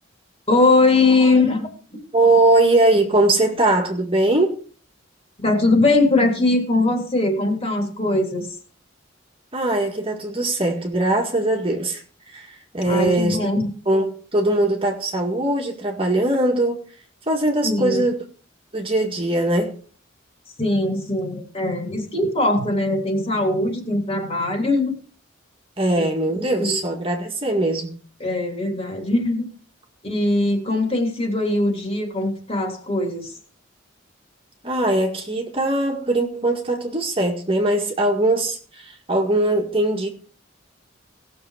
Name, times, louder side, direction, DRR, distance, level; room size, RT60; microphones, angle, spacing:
voice 1, 0.5-1.7 5.4-8.5 12.9-13.7 17.6-18.0 20.6-24.9 26.3-26.8 28.2-29.5 30.0-33.3, left 2 dB, 30° left, 3.2 m, -20 dB
voice 2, 2.1-4.6 9.5-12.0 12.3-13.5 13.9-16.8 17.3-18.2 18.7-19.7 25.8-27.9 34.6-40.1, right 2 dB, 30° right, 1.9 m, -21 dB
18.5 x 7.0 x 4.9 m
head